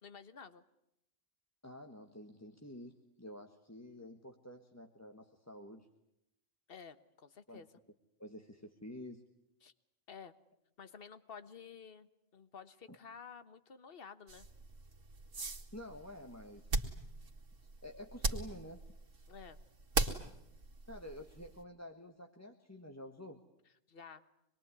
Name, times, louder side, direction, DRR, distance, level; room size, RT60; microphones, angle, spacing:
voice 1, 0.0-0.6 6.7-7.7 9.6-9.7 10.1-10.3 10.8-14.5 19.3-19.6 23.9-24.2, left 6 dB, 50° left, 12 dB, 1.5 m, -52 dB
voice 2, 1.6-5.9 7.5-7.7 8.2-9.2 12.9-13.0 15.7-16.8 17.8-18.8 20.9-23.4, left 1 dB, 15° left, 4 dB, 1.5 m, -50 dB
sound 1, 14.3-21.6, right 3 dB, 85° right, 2.5 m, -40 dB
26.0 x 22.0 x 9.7 m, 0.82 s
omnidirectional pair, 1.3 m